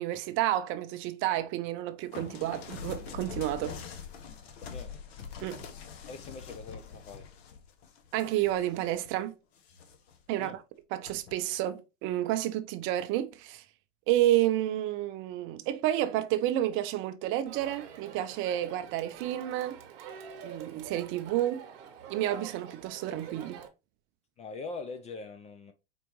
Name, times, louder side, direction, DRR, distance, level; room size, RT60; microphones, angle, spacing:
voice 1, 0.0-3.8 5.4-5.6 8.1-9.3 10.3-10.6 10.9-13.7 14.1-19.8 20.4-21.6 22.1-23.6, right 13 dB, 40° right, 0.5 m, -30 dB
sound 1, 2.1-9.1 9.6-10.2 11.1-11.4, left 6 dB, 65° left, 0.9 m, -44 dB
voice 2, 6.1-7.3 10.4-10.6 24.4-25.7, left 4 dB, 20° left, 0.3 m, -42 dB
Crowd, 17.5-23.7, right 7 dB, 60° right, 0.9 m, -46 dB
4.5 x 2.5 x 2.9 m
hypercardioid pair, 100°, 33 cm